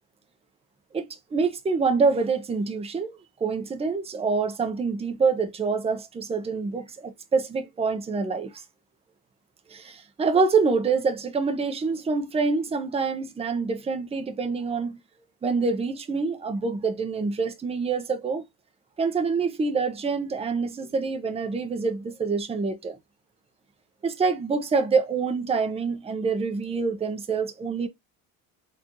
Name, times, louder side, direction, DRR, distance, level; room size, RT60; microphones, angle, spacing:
voice 1, 1.3-8.6 9.7-15.0 15.4-18.4 19.0-23.0 24.0-27.9, right 4 dB, 15° right, 0.7 m, -26 dB
4.3 x 2.7 x 2.9 m
cardioid pair, 115°, 37 cm